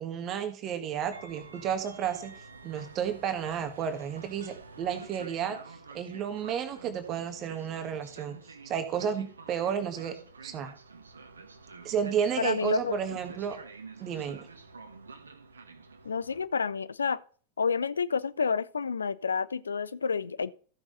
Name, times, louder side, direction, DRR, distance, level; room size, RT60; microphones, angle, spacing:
voice 1, 0.0-2.3 2.6-8.4 8.6-10.2 10.4-10.7 11.8-13.6 14.0-14.5, right 8 dB, 35° right, 1.5 m, -32 dB
Train, 1.0-16.4, right 4 dB, 75° right, 1.2 m, -49 dB
voice 2, 12.4-13.0 16.0-17.2 17.6-20.5, left 5 dB, 75° left, 0.5 m, -29 dB
14.5 x 6.4 x 3.9 m
figure-of-eight pair, 90°, 0 cm